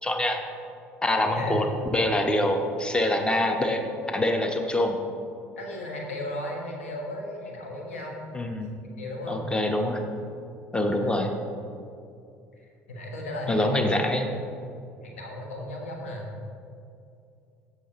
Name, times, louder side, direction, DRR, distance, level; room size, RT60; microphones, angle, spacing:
voice 1, 0.0-0.4 1.0-5.0 8.3-8.8 9.3-10.0 10.7-11.3 13.5-14.3, left 1 dB, 15° left, 4 dB, 0.9 m, -25 dB
voice 2, 5.6-8.2 9.0-9.5 10.9-11.2 12.6-13.9 15.0-16.3, left 1 dB, 85° left, -1 dB, 1.3 m, -35 dB
15.0 x 5.9 x 2.9 m, 2.5 s
hypercardioid pair, 60°, 7 cm